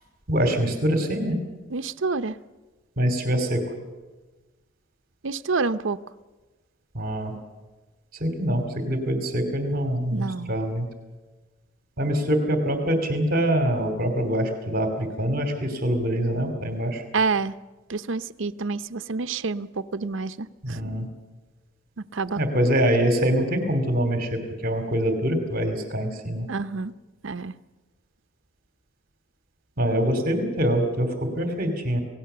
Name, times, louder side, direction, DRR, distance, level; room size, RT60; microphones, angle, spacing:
voice 1, 0.3-1.4 3.0-3.6 6.9-7.3 8.1-10.9 12.0-17.0 20.6-21.1 22.4-26.5 29.8-32.0, equal, 50° right, 6 dB, 2.7 m, -24 dB
voice 2, 1.7-2.4 5.2-6.0 10.1-10.5 17.1-17.5 17.9-20.8 22.1-22.4 26.5-26.9 27.2-27.5, right 4 dB, 70° right, 10 dB, 0.7 m, -28 dB
27.5 x 18.0 x 6.8 m, 1.2 s
head